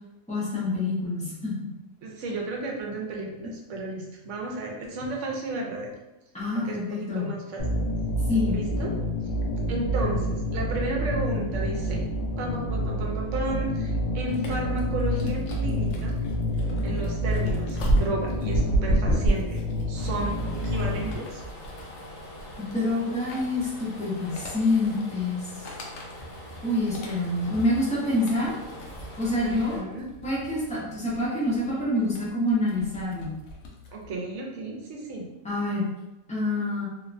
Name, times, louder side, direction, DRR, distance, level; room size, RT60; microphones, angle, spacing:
voice 1, 0.3-1.7 6.3-7.3 8.3-8.6 22.6-25.7 26.6-28.5 29.2-29.8 30.2-33.3 35.4-35.9 36.3-36.9, left 2 dB, 10° left, -8 dB, 0.4 m, -27 dB
voice 2, 2.0-6.0 6.5-7.6 8.5-8.9 9.7-12.1 12.4-16.2 16.8-19.6 19.9-21.4 29.4-30.0 33.9-35.3, right 2 dB, 65° right, -1 dB, 0.9 m, -33 dB
sound 1, 7.6-21.1, equal, 90° left, 0.4 m, -28 dB
sound 2, 14.3-34.2, right 1 dB, 70° left, 0.9 m, -33 dB
sound 3, 19.9-29.8, left 1 dB, 40° left, 0.7 m, -42 dB
2.8 x 2.1 x 2.5 m, 0.98 s
omnidirectional pair, 1.5 m